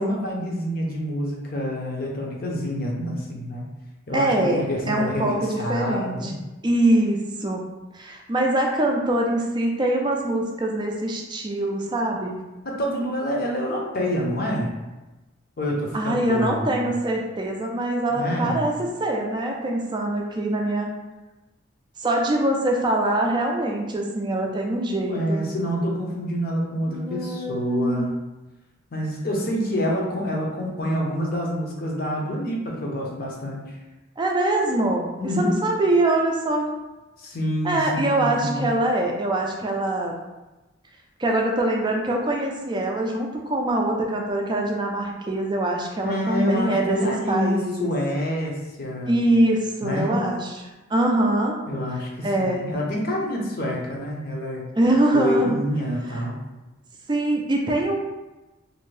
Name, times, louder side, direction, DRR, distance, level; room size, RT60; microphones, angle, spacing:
voice 1, 0.0-3.6 4.1-6.4 12.6-14.7 15.6-16.9 18.1-18.7 25.1-28.1 28.9-33.8 35.2-35.5 37.2-38.7 46.0-49.2 49.8-50.2 51.7-54.7 55.1-56.4, equal, 45° left, -2 dB, 0.6 m, -27 dB
voice 2, 4.1-6.3 6.6-7.6 7.9-12.4 15.9-20.9 22.0-25.4 26.9-28.0 34.2-35.1 35.4-36.7 37.6-40.1 41.2-47.9 49.1-51.5 52.2-52.7 54.7-55.5 56.0-56.2 57.1-58.0, right 1 dB, 20° right, 0 dB, 0.4 m, -23 dB
2.7 x 2.6 x 3.2 m, 1.1 s
head